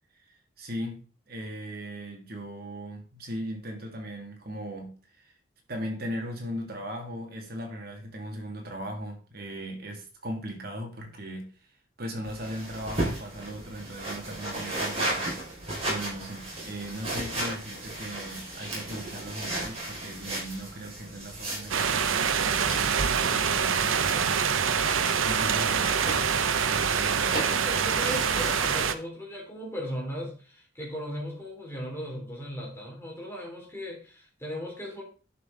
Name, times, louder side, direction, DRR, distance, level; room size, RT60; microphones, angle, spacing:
voice 1, 0.2-5.3 5.7-11.5 12.0-15.4 15.9-24.4 25.2-27.4, equal, 50° right, 2 dB, 2.2 m, -38 dB
sound 1, 12.2-28.8, right 1 dB, 30° right, 4.9 m, -36 dB
sound 2, 21.7-28.9, right 6 dB, 80° right, 0.7 m, -25 dB
voice 2, 27.3-35.0, equal, 10° left, -2 dB, 3.3 m, -37 dB
11.0 x 5.9 x 3.8 m, 0.38 s
head